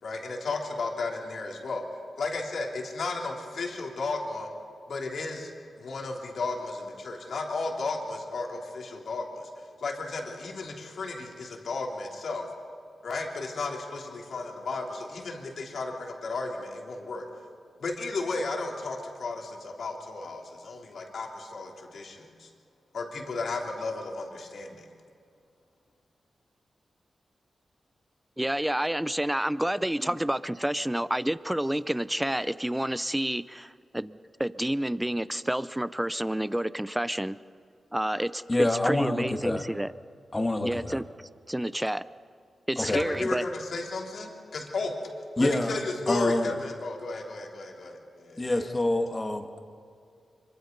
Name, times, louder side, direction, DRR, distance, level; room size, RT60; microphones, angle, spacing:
voice 1, 0.0-1.8 2.2-4.5 4.9-5.5 5.8-12.5 13.0-17.2 17.8-22.5 22.9-24.9 42.9-44.9 45.3-48.7, left 3 dB, 75° left, 0 dB, 3.4 m, -34 dB
voice 2, 28.4-37.4 37.9-39.9 40.6-41.0 41.5-42.0 42.7-43.4, right 1 dB, 10° right, 16 dB, 0.6 m, -29 dB
voice 3, 38.5-39.6 40.3-41.0 42.8-43.0 45.4-45.7 46.1-46.5 48.4-49.6, left 1 dB, 20° left, 4 dB, 2.0 m, -26 dB
25.5 x 23.5 x 5.4 m, 2.3 s
cardioid pair, 80°, 0 cm